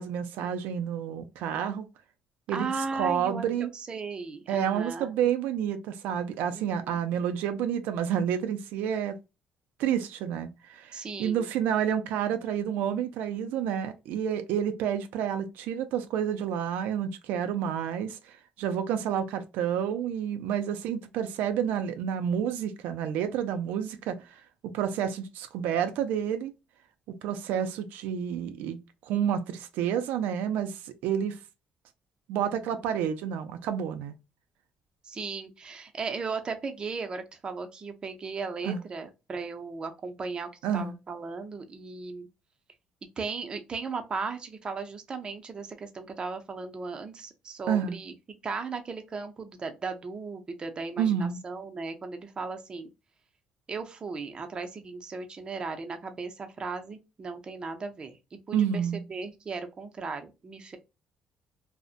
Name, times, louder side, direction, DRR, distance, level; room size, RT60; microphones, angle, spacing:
voice 1, 0.0-1.9 2.5-3.7 4.5-9.2 9.8-26.5 27.2-31.4 32.3-34.1 38.6-38.8 40.6-40.9 47.7-48.0 51.0-51.4 58.5-59.0, right 8 dB, 85° right, 0.3 m, -29 dB
voice 2, 2.5-5.1 6.5-6.9 10.9-11.4 35.0-42.3 43.2-48.1 48.4-52.9 53.7-60.8, right 4 dB, 30° right, 0.5 m, -36 dB
2.6 x 2.0 x 2.4 m
cardioid pair, 120°, 3 cm